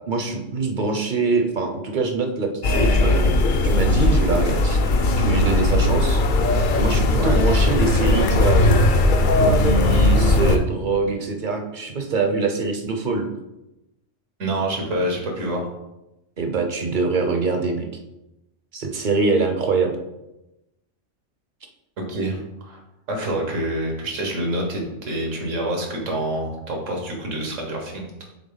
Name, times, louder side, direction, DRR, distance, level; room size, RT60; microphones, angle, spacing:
voice 1, 0.1-3.3 3.6-4.8 5.2-6.2 6.7-8.8 9.4-13.3 16.4-17.9 18.7-19.9, right 4 dB, 50° right, 4 dB, 0.7 m, -24 dB
sound 1, 2.6-10.6, left 2 dB, 55° left, 0.6 m, -18 dB
voice 2, 14.4-15.6 22.1-22.4 22.6-22.8 23.1-28.1, right 1 dB, 85° right, 1 dB, 1.7 m, -26 dB
7.4 x 3.4 x 4.0 m, 0.94 s
omnidirectional pair, 1.3 m